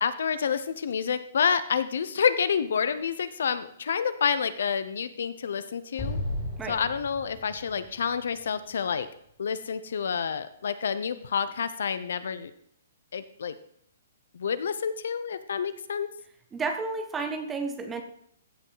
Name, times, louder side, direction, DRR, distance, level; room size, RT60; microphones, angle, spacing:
voice 1, 0.0-6.2 6.7-9.1 9.4-12.5 13.1-13.6 14.3-16.1, left 7 dB, 65° left, 13 dB, 0.8 m, -28 dB
Explosion, 6.0-9.3, left 1 dB, 10° left, 2.2 m, -36 dB
voice 2, 16.5-18.0, right 4 dB, 10° right, 7 dB, 0.7 m, -31 dB
15.0 x 5.4 x 4.0 m, 0.67 s
hypercardioid pair, 180°, 0 cm